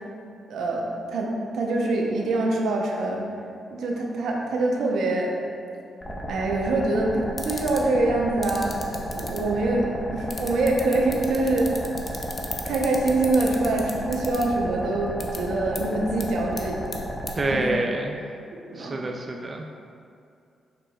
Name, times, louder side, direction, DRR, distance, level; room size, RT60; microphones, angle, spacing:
voice 1, 0.5-3.2 3.7-5.3 6.3-8.7 9.1-11.7 12.6-16.8 17.5-17.6 18.7-19.0, right 2 dB, 80° right, 0 dB, 0.8 m, -24 dB
sound 1, 6.0-17.6, equal, 25° left, 1.2 m, -33 dB
sound 2, 7.3-7.8 8.4-9.4 10.3-14.4 15.2-15.4 15.8-15.9 16.2-16.3 16.6-16.9 17.3-17.4, left 3 dB, 40° left, 0.8 m, -34 dB
voice 2, 17.4-18.2 18.8-19.7, right 2 dB, 35° right, 2 dB, 0.4 m, -27 dB
6.7 x 5.8 x 2.4 m, 2.5 s
supercardioid pair, 60°, 0 cm